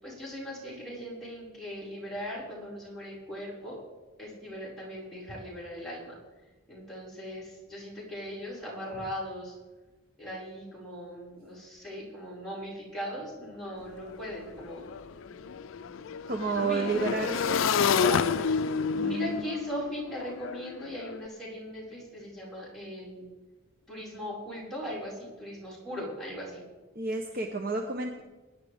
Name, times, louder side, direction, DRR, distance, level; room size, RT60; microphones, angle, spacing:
voice 1, 0.0-3.8 4.2-6.2 6.7-9.6 10.2-14.9 16.5-17.4 17.7-18.3 19.0-23.3 23.9-26.6, equal, ahead, -8 dB, 5.6 m, -39 dB
Motorcycle / Engine, 13.6-13.7 14.0-21.2, left 6 dB, 70° left, 0.4 m, -30 dB
sound 1, 13.8-19.1, equal, 20° left, 2.8 m, -57 dB
voice 2, 16.3-18.5 18.9-19.5 26.9-28.2, right 3 dB, 45° right, 3 dB, 0.9 m, -32 dB
22.0 x 10.5 x 3.6 m, 1.2 s
head